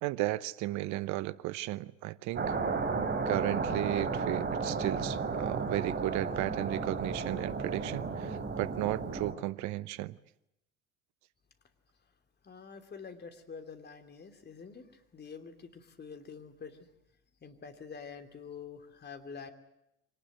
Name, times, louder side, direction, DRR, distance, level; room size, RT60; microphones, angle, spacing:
voice 1, 0.0-2.6 3.2-10.2, right 16 dB, 55° right, 1.0 m, -34 dB
sound 1, 2.4-9.3, right 4 dB, 30° right, 3.6 m, -33 dB
voice 2, 12.4-14.8 15.1-16.8 17.4-19.5, left 5 dB, 30° left, 3.1 m, -46 dB
24.5 x 19.0 x 9.3 m
hypercardioid pair, 70°, 35 cm